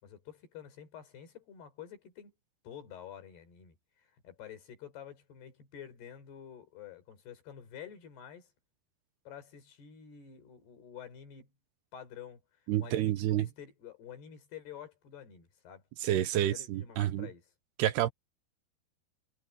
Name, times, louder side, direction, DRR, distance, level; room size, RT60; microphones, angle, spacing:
voice 1, 0.0-2.3 2.6-8.5 9.3-11.5 11.9-15.8 16.3-17.5, left 9 dB, 65° left, 5.9 m, -49 dB
voice 2, 12.7-13.5 16.0-17.3 17.8-18.1, right 12 dB, 75° right, 2.9 m, -29 dB
omnidirectional pair, 5.0 m